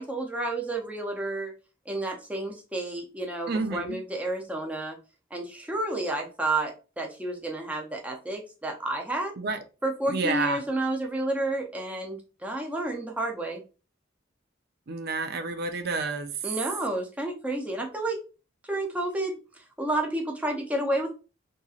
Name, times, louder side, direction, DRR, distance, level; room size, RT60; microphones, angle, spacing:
voice 1, 0.0-1.5 1.9-5.0 5.3-9.3 9.8-13.6 16.4-18.2 18.7-19.3 19.8-21.1, right 1 dB, 5° right, 0.5 m, -30 dB
voice 2, 3.5-4.0 9.4-9.6 10.1-10.6 14.9-16.3, right 3 dB, 55° right, 0.5 m, -29 dB
2.8 x 2.7 x 2.4 m
head